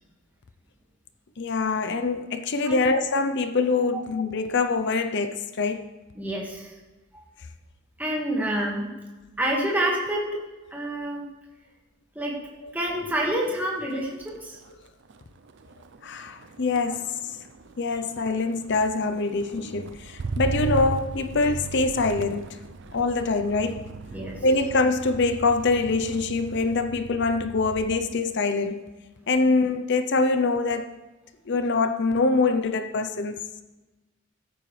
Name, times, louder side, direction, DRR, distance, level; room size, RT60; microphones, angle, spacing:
voice 1, 1.4-5.9 12.6-12.7 13.0-13.1 16.0-17.2 17.8-22.6 22.9-23.9 24.4-28.8 29.3-31.0 31.5-33.4, left 3 dB, 55° left, 0.6 m, -24 dB
voice 2, 6.2-6.7 7.1-7.2 8.0-8.9 9.4-10.3 10.7-11.2 12.2-12.3 12.7-14.6 24.1-24.4, right 1 dB, 10° right, 1.8 m, -28 dB
Motor vehicle (road), 13.0-13.3 13.6-28.1 28.4-28.9, right 3 dB, 60° right, 0.5 m, -37 dB
15.0 x 8.8 x 3.3 m
head